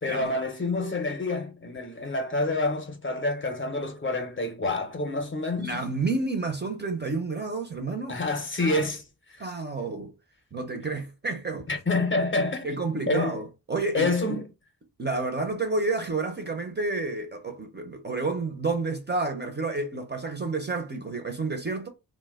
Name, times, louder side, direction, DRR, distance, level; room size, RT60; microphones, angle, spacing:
voice 1, 0.0-5.8 8.1-9.0 9.3-9.4 11.7-12.7 13.1-13.4 13.9-14.4, left 2 dB, 30° left, 0.5 m, -27 dB
voice 2, 5.6-8.2 8.6-8.9 9.4-10.1 10.5-11.7 12.6-14.4 15.0-21.9, right 3 dB, 30° right, 0.4 m, -30 dB
2.8 x 2.1 x 3.4 m
wide cardioid pair, 175°, 38 cm